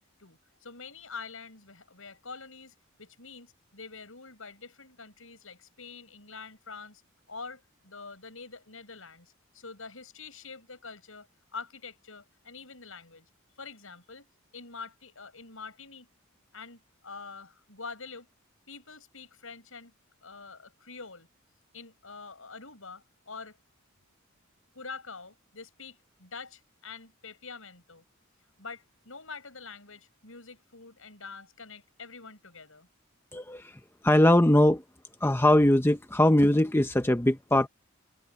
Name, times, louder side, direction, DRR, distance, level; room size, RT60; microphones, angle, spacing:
voice 1, 0.2-7.0 7.3-11.3 11.5-13.2 13.6-14.3 14.5-16.1 16.5-18.3 18.7-19.9 20.2-21.3 21.7-23.6 24.7-28.0 28.6-32.9, left 4 dB, 75° left, 6.9 m, -45 dB
voice 2, 33.3-33.6 34.0-34.8 35.2-37.7, left 1 dB, 10° left, 0.8 m, -21 dB
head